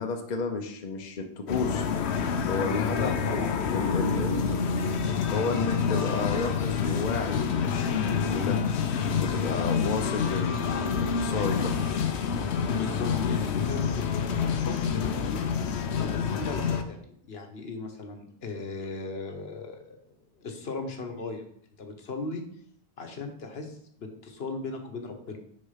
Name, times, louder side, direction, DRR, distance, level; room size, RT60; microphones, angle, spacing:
voice 1, 0.0-1.8 2.5-3.4 3.7-4.7 5.3-8.6 9.2-11.7, left 4 dB, 45° left, 4 dB, 0.8 m, -32 dB
sound 1, 1.5-16.8, left 6 dB, 90° left, 1.0 m, -28 dB
voice 2, 2.9-3.5 6.2-6.3 12.7-15.4 15.9-20.0 20.4-21.5 21.8-22.4 23.0-25.4, left 3 dB, 70° left, 5 dB, 1.3 m, -37 dB
6.6 x 4.4 x 5.7 m, 0.68 s
omnidirectional pair, 1.1 m